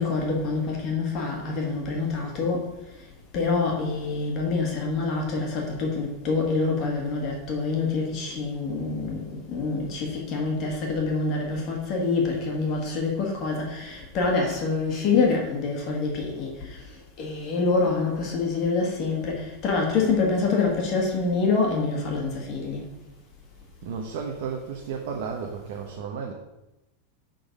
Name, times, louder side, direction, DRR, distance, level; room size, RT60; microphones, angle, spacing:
voice 1, 0.0-2.6 3.3-16.5 17.2-22.8, left 4 dB, 30° left, 0 dB, 1.6 m, -26 dB
voice 2, 23.8-26.3, right 6 dB, 50° right, 1 dB, 0.9 m, -33 dB
8.6 x 3.9 x 5.3 m, 0.95 s
supercardioid pair, 175°, 0 cm